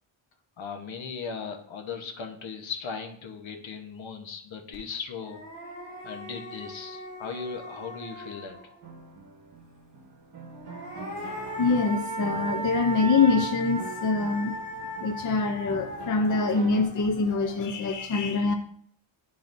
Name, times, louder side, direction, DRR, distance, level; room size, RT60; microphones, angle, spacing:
voice 1, 0.6-5.4 6.0-8.6, left 5 dB, 65° left, 4 dB, 1.0 m, -37 dB
sound 1, 4.7-4.8 5.2-8.9 10.5-17.8, right 2 dB, 15° left, 2.5 m, -37 dB
sound 2, 8.8-16.8, right 4 dB, 55° right, 1.1 m, -43 dB
voice 2, 11.6-14.6 15.0-18.5, left 4 dB, 40° left, 4 dB, 0.6 m, -24 dB
11.5 x 3.9 x 2.6 m, 0.66 s
wide cardioid pair, 150°, 50 cm